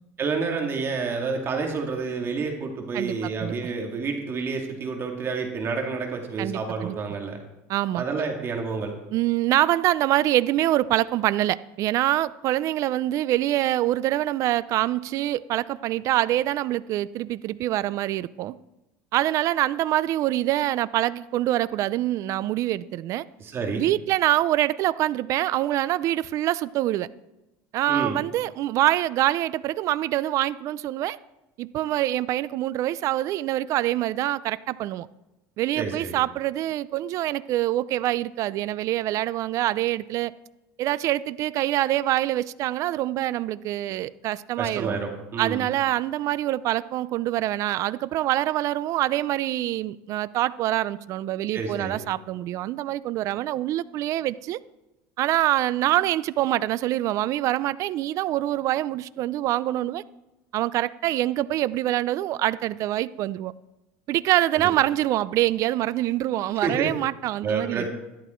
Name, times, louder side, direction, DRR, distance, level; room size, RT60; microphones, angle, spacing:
voice 1, 0.2-7.4 8.0-9.0 23.4-23.9 27.9-28.2 35.8-36.2 44.6-45.6 51.5-52.0 64.5-64.6 66.6-66.9 67.4-67.9, right 4 dB, 35° right, 3 dB, 2.3 m, -29 dB
voice 2, 2.9-3.5 6.4-7.0 7.7-8.0 9.1-18.6 19.1-23.2 23.8-27.1 27.7-31.2 31.6-35.1 35.6-40.3 40.8-45.0 45.4-54.6 55.2-60.0 60.5-63.5 64.1-67.9, right 14 dB, 55° right, 18 dB, 0.5 m, -25 dB
13.0 x 11.5 x 4.5 m, 0.96 s
supercardioid pair, 115°, 7 cm